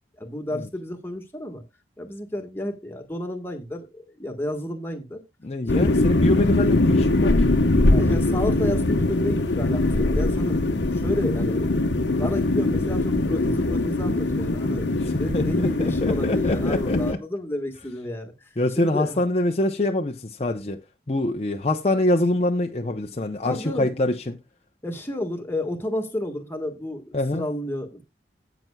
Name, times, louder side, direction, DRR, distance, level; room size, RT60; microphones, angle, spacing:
voice 1, 0.2-1.6 2.0-5.2 7.8-10.6 10.9-14.9 15.2-18.5 18.8-19.2 23.5-23.9 24.8-28.0, left 1 dB, 15° left, 1.5 m, -31 dB
voice 2, 5.4-7.5 15.0-17.2 18.6-20.8 21.1-24.4 27.1-27.4, left 1 dB, 35° left, 0.7 m, -25 dB
sound 1, 5.7-17.1, left 2 dB, 80° left, 1.0 m, -22 dB
17.0 x 6.1 x 2.3 m
head